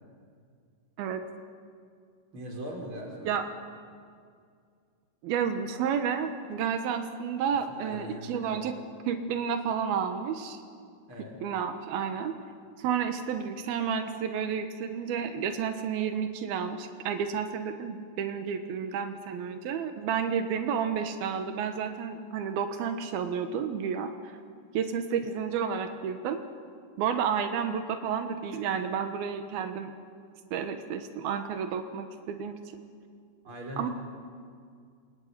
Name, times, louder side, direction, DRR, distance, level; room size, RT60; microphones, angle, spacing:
voice 1, 2.3-3.4 7.7-8.8 11.1-11.4 33.4-33.9, equal, 35° right, -1 dB, 6.0 m, -40 dB
voice 2, 5.2-8.7 9.1-10.6 11.4-12.4 12.8-24.4 24.7-26.4 27.0-29.9 30.5-32.8 33.8-33.9, right 7 dB, 90° right, 7 dB, 3.2 m, -31 dB
28.0 x 22.5 x 9.6 m, 2.2 s
omnidirectional pair, 4.2 m